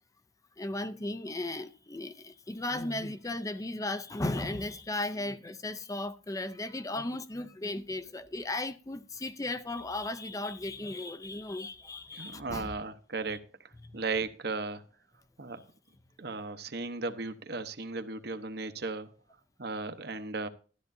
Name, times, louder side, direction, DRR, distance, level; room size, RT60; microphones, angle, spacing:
voice 1, 0.6-12.7 13.3-13.4, left 2 dB, 20° left, 0.5 m, -36 dB
voice 2, 12.1-14.8 15.4-15.6 16.2-19.1 19.6-20.5, right 3 dB, 60° right, 0.9 m, -36 dB
13.0 x 12.0 x 2.7 m
head